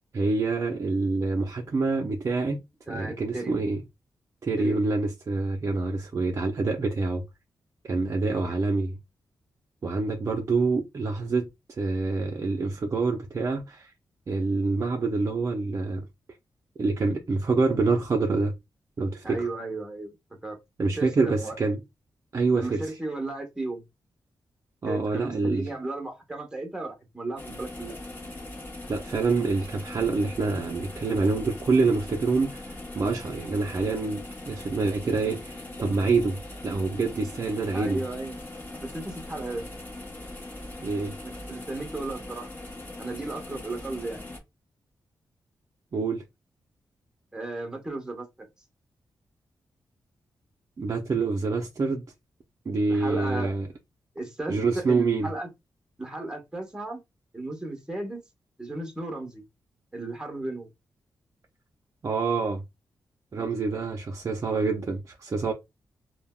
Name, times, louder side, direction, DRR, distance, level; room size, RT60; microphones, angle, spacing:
voice 1, 0.1-2.6 2.9-3.8 4.4-7.2 7.8-9.0 9.8-11.5 11.8-13.9 14.3-16.1 16.8-18.5 19.0-19.5 20.8-21.8 22.3-22.9 24.8-25.7 28.9-32.6 32.9-36.4 36.6-38.0 40.8-41.1 45.9-46.2 50.8-52.1 52.7-53.7 54.5-55.3 62.0-62.6 63.3-65.5, right 3 dB, 40° right, 0.4 m, -26 dB
voice 2, 2.9-3.6 4.6-4.8 8.3-8.5 19.2-20.1 20.4-20.6 21.0-21.6 22.5-23.8 24.9-28.0 37.7-38.4 38.8-39.7 41.2-42.5 43.0-44.3 47.3-48.5 52.9-53.5 54.1-55.5 56.0-57.0 57.3-58.2 58.6-59.4 59.9-60.7, right 2 dB, 10° right, 0.9 m, -34 dB
sound 1, 27.4-44.4, left 2 dB, 25° left, 0.9 m, -40 dB
3.3 x 2.1 x 2.2 m
cardioid pair, 95°, 8 cm